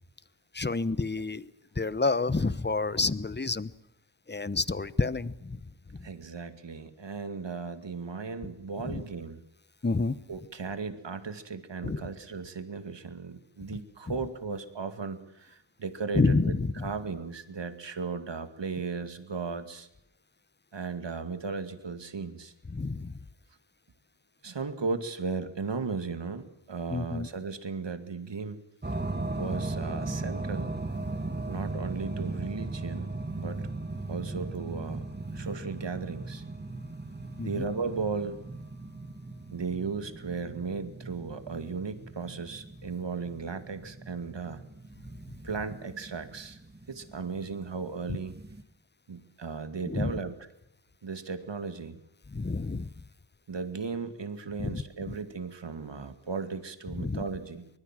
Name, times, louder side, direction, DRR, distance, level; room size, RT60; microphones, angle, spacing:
voice 1, 0.5-1.5 1.8-3.7 4.3-5.6 8.8-9.0 9.8-10.2 11.8-12.0 16.1-16.9 22.7-23.1 26.9-27.3 37.4-37.6 49.9-50.1 52.3-52.9 54.6-54.8 55.1-55.2 57.0-57.2, left 3 dB, 20° left, 17 dB, 1.0 m, -29 dB
voice 2, 6.0-9.4 10.3-19.9 20.7-22.5 24.4-28.6 29.4-30.7 31.4-33.7 34.1-35.0 35.3-36.4 37.4-38.4 39.5-44.6 45.4-46.6 46.9-48.3 49.1-50.5 51.0-52.0 53.5-57.7, right 5 dB, 60° right, 9 dB, 2.3 m, -36 dB
sound 1, 28.8-48.6, right 2 dB, 20° right, 2.2 m, -38 dB
24.5 x 21.0 x 7.5 m, 0.75 s
wide cardioid pair, 70°, 47 cm